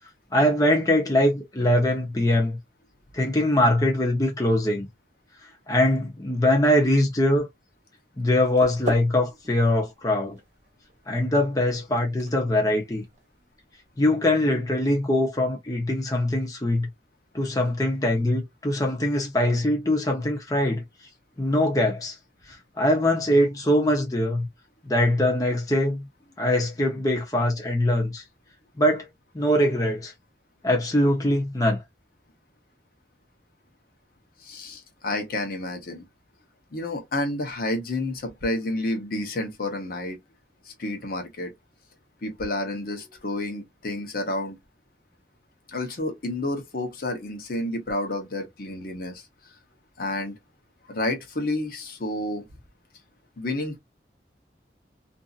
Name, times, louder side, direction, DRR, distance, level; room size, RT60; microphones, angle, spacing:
voice 1, 0.3-2.6 3.1-4.9 5.7-7.4 8.2-10.4 11.1-13.0 14.0-16.9 17.3-20.8 21.4-22.2 22.5-24.5 24.8-26.1 26.4-28.2 28.8-29.1 29.3-30.1 30.6-31.8, left 1 dB, 20° left, 0.7 m, -22 dB
sound 1, 8.3-14.2, right 1 dB, 45° right, 1.0 m, -40 dB
voice 2, 34.4-36.0 36.7-40.2 40.7-41.5 42.2-44.6 45.7-49.2 50.0-50.3 50.9-52.4 53.4-53.8, left 1 dB, 55° left, 0.8 m, -30 dB
2.6 x 2.5 x 2.4 m
head